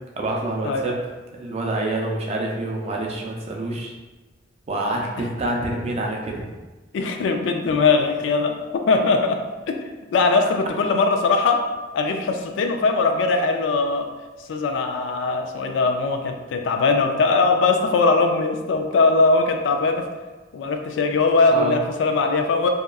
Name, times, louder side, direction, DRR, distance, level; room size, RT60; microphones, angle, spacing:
voice 1, 0.2-1.0 1.3-3.9 4.7-6.5 21.5-21.8, right 2 dB, 35° right, 0 dB, 0.4 m, -27 dB
voice 2, 6.9-8.5 8.9-9.4 9.7-9.8 10.1-11.6 11.9-14.0 14.5-20.0 20.5-22.7, left 3 dB, 80° left, 5 dB, 0.3 m, -20 dB
2.8 x 2.3 x 2.3 m, 1.3 s
head